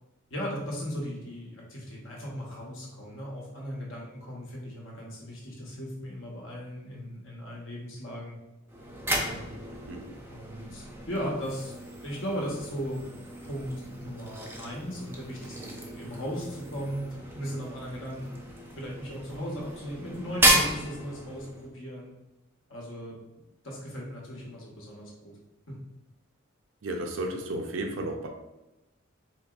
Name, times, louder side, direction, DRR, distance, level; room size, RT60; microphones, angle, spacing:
voice 1, 0.3-8.4 9.1-9.5 10.3-11.7 12.0-13.0 13.4-18.3 18.8-22.1 22.7-23.2 23.6-25.4 25.7-25.8, equal, 70° left, -3 dB, 1.1 m, -37 dB
sound 1, 8.7-21.7, right 1 dB, 10° right, 0.5 m, -33 dB
voice 2, 26.8-28.3, right 1 dB, 65° right, 2 dB, 0.5 m, -33 dB
4.2 x 3.0 x 2.4 m, 1.0 s
head